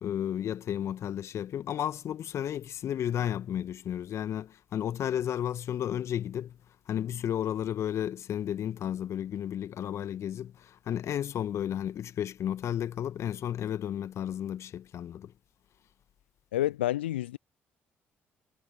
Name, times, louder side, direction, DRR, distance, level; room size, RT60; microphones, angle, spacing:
voice 1, 0.0-6.6 6.9-15.3, left 10 dB, 50° left, 1.7 m, -33 dB
voice 2, 16.5-17.4, left 14 dB, 75° left, 0.8 m, -29 dB
figure-of-eight pair, 45°, 6 cm